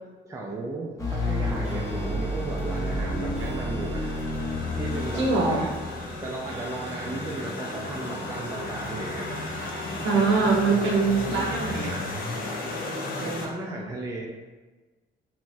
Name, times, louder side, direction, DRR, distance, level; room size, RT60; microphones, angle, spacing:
voice 1, 0.2-4.1 4.7-5.7 6.2-9.3 10.1-10.3 10.7-10.8 11.2-11.5 13.2-14.3, right 2 dB, 15° right, -2 dB, 0.4 m, -35 dB
sound 1, 1.0-6.3, left 1 dB, 15° left, 0.7 m, -30 dB
sound 2, 1.2-13.5, left 2 dB, 45° left, 0.5 m, -35 dB
Clock, 1.6-10.4, equal, 35° right, 0.8 m, -45 dB
voice 2, 5.1-5.7 10.0-11.9, right 4 dB, 70° right, -3 dB, 0.8 m, -23 dB
2.9 x 2.2 x 2.6 m, 1.3 s
cardioid pair, 90°, 20 cm